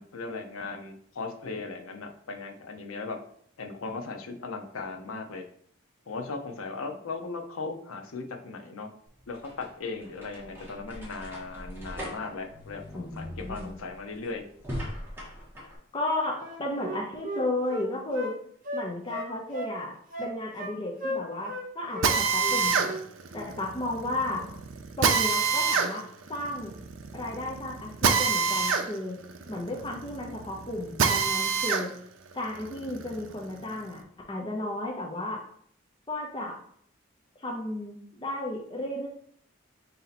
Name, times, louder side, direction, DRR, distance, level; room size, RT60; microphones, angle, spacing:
voice 1, 0.0-3.2 3.6-5.4 6.1-8.9 9.3-14.5, left 3 dB, 90° left, 4 dB, 0.7 m, -37 dB
sound 1, 9.1-15.8, equal, 10° right, 1.0 m, -41 dB
voice 2, 12.9-13.8 15.9-18.3 18.7-19.9 20.2-23.0 23.3-24.5 25.0-26.0 26.3-26.7 27.1-29.2 29.5-31.9 32.3-34.0 34.3-35.4 36.1-36.6 37.4-39.1, left 1 dB, 25° left, -1 dB, 0.6 m, -33 dB
Wind instrument woodwind instrument, 16.4-18.3 18.6-19.8 20.1-20.7 21.0-21.7 21.9-22.1 22.4-23.0 23.3-23.5, equal, 40° right, 0.7 m, -35 dB
Drill, 22.0-31.9 32.3-33.9, right 5 dB, 70° right, 0.5 m, -27 dB
4.2 x 2.8 x 4.0 m, 0.62 s
head